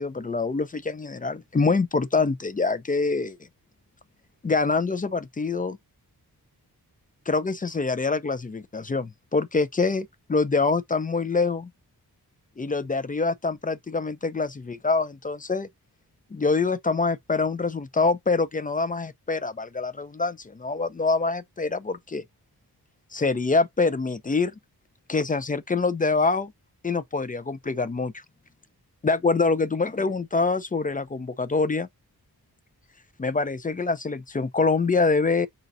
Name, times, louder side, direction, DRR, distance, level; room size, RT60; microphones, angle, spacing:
voice 1, 0.0-3.4 4.4-5.8 7.3-11.7 12.6-15.7 16.3-22.2 23.1-24.5 25.1-26.5 26.8-28.2 29.0-31.9 33.2-35.5, left 4 dB, 20° left, 0.4 m, -25 dB
5.0 x 4.0 x 2.6 m
wide cardioid pair, 120°, 38 cm